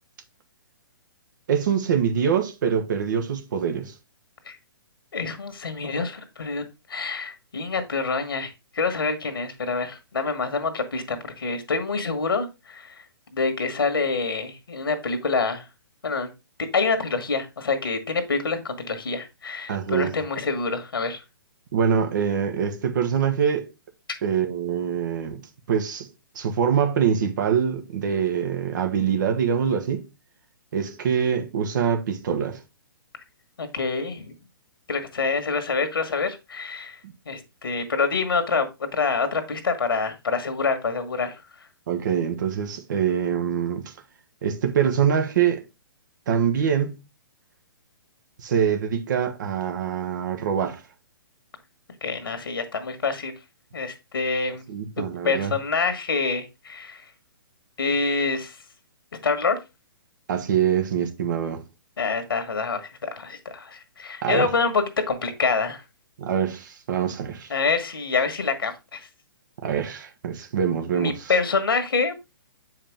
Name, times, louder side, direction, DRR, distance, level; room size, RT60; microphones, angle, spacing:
voice 1, 1.5-3.9 19.7-20.1 21.7-23.7 24.2-25.4 25.7-30.1 30.7-32.6 37.0-37.1 41.9-43.9 44.4-45.6 46.3-47.0 48.4-50.8 54.7-55.5 60.3-61.6 64.2-64.5 66.2-67.5 69.6-71.3, right 8 dB, 55° right, 1.3 m, -24 dB
voice 2, 5.1-6.6 6.9-12.9 13.3-15.7 16.0-16.3 16.7-21.2 33.6-34.3 34.9-37.0 37.2-38.7 38.9-41.4 52.0-53.3 53.7-54.6 55.2-57.0 57.8-58.6 59.2-59.6 62.0-65.8 67.5-69.1 70.9-72.1, left 4 dB, 75° left, 1.5 m, -26 dB
7.5 x 5.0 x 3.4 m
figure-of-eight pair, 130°, 12 cm